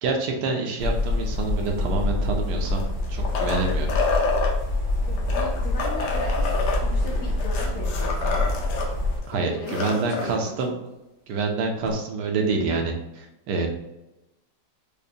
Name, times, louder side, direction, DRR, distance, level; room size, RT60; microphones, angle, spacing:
voice 1, 0.0-3.9 9.3-10.8 11.3-13.7, right 3 dB, 75° right, 2 dB, 1.2 m, -27 dB
sound 1, 0.8-9.2, left 2 dB, 45° left, 0.8 m, -26 dB
sound 2, 2.6-4.5 5.2-8.9 9.2-9.3 9.6-10.4 11.9-12.0, left 3 dB, 90° left, 0.6 m, -28 dB
voice 2, 5.1-8.5 9.3-10.8, left 2 dB, 70° left, -3 dB, 1.2 m, -37 dB
5.1 x 2.1 x 2.7 m, 0.95 s
omnidirectional pair, 1.9 m